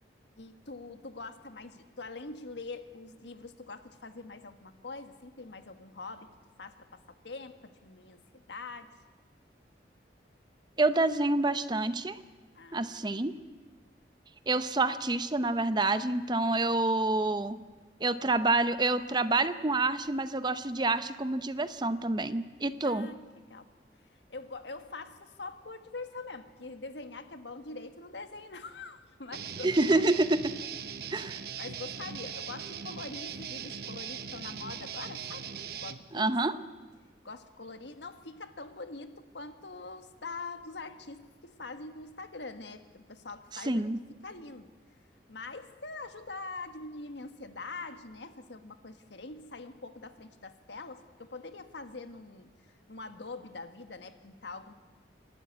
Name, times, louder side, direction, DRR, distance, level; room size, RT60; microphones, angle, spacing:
voice 1, 0.4-6.3 6.6-8.9 12.5-13.2 22.8-23.7 24.0-30.3 31.1-35.5 35.7-36.3 37.2-43.9 44.2-44.7 45.3-54.7, left 3 dB, 80° left, 9 dB, 1.4 m, -44 dB
voice 2, 10.8-12.2 12.7-13.3 14.5-17.6 18.0-23.1 29.6-30.4 31.1-31.4 36.1-36.5 43.7-44.0, right 2 dB, 25° right, 12 dB, 0.7 m, -27 dB
Guitar, 29.3-36.0, right 7 dB, 60° right, 1.0 m, -40 dB
27.0 x 12.0 x 9.5 m, 1.4 s
head